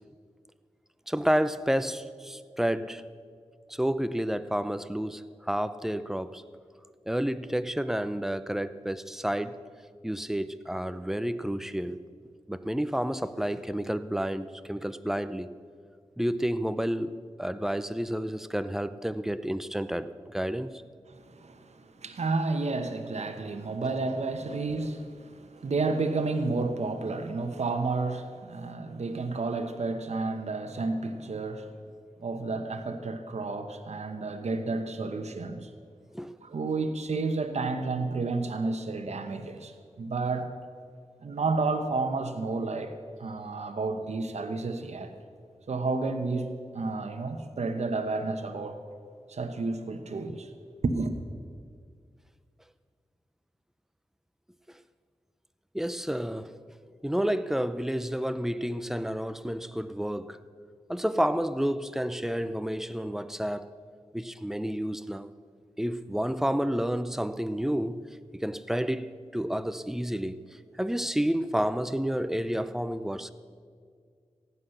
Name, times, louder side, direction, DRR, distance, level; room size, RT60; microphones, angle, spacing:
voice 1, 1.1-3.0 3.7-6.4 7.1-9.6 10.0-12.0 12.5-15.5 16.2-20.8 36.1-36.3 55.7-56.5 57.0-60.4 60.9-63.7 64.1-65.3 65.8-68.0 68.4-70.5 70.8-73.3, equal, 5° right, 0.6 m, -30 dB
voice 2, 21.1-31.8 32.2-35.7 36.4-40.5 41.2-42.9 43.2-45.1 45.7-48.8 49.3-50.5 50.8-51.1, right 3 dB, 75° right, 1.1 m, -31 dB
15.5 x 9.6 x 6.6 m
wide cardioid pair, 70°, 12 cm